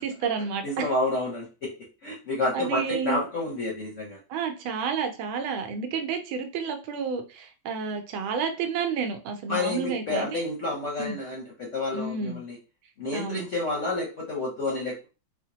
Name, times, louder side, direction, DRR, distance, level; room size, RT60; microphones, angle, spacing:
voice 1, 0.0-0.6 2.5-3.2 4.3-10.4 11.0-11.2 11.9-12.4 13.1-13.4, right 5 dB, 85° right, 5 dB, 1.5 m, -30 dB
voice 2, 0.6-1.7 2.0-4.2 9.5-12.6 13.0-15.1, left 2 dB, 60° left, -2 dB, 0.8 m, -29 dB
4.4 x 2.1 x 2.8 m, 0.32 s
omnidirectional pair, 2.1 m